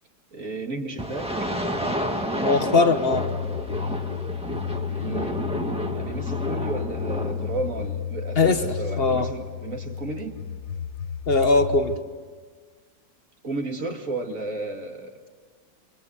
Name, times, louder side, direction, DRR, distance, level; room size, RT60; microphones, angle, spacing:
voice 1, 0.3-1.5 4.9-5.4 5.9-10.4 13.4-15.2, right 2 dB, 45° right, 3 dB, 2.5 m, -33 dB
sound 1, 1.0-7.9, equal, 5° right, 1.7 m, -30 dB
voice 2, 2.4-3.2 8.4-8.6 9.0-9.3 11.3-11.9, left 3 dB, 35° left, 8 dB, 1.4 m, -20 dB
sound 2, 3.1-12.0, left 7 dB, 85° left, 1.8 m, -32 dB
28.0 x 26.0 x 8.1 m, 1.6 s
omnidirectional pair, 2.0 m